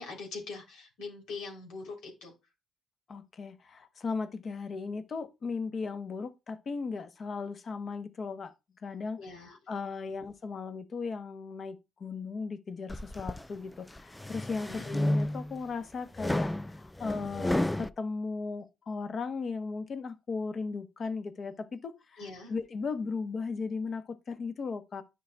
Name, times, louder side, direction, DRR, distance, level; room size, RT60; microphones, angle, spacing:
voice 1, 0.0-2.3 9.2-9.6 10.1-10.2 14.6-14.9 22.2-22.5, left 4 dB, 85° left, 3.0 m, -42 dB
voice 2, 3.1-8.5 8.8-25.0, left 4 dB, 50° left, 0.9 m, -37 dB
sound 1, 12.9-13.4 14.0-15.6 16.2-17.9, left 1 dB, 10° left, 0.3 m, -31 dB
10.0 x 5.4 x 2.2 m
cardioid pair, 90°, 0 cm